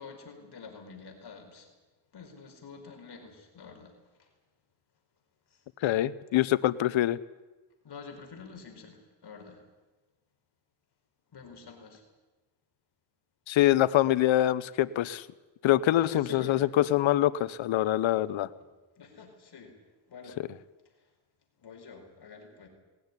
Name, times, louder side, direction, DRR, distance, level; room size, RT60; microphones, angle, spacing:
voice 1, 0.0-1.7 2.1-3.9 4.2-4.3 5.5-5.6 7.8-9.6 11.3-12.0 16.0-16.9 18.6-18.7 19.0-19.7 20.1-20.4 21.6-22.7, left 5 dB, 60° left, 3 dB, 5.0 m, -48 dB
voice 2, 5.8-7.2 13.5-15.3 15.6-18.5, left 13 dB, 90° left, 17 dB, 0.9 m, -24 dB
20.0 x 17.5 x 9.9 m, 1.2 s
cardioid pair, 110°, 45 cm